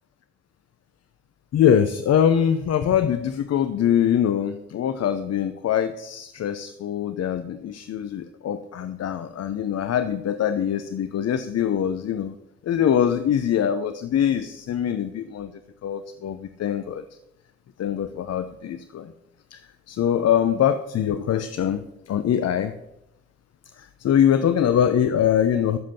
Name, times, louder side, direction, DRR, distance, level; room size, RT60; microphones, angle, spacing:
voice 1, 1.5-12.3 12.6-15.5 15.8-17.0 17.8-19.1 19.5-19.6 19.9-22.7 23.8-25.8, left 9 dB, 50° left, 11 dB, 0.8 m, -23 dB
14.0 x 7.5 x 5.9 m, 0.90 s
hypercardioid pair, 45°, 32 cm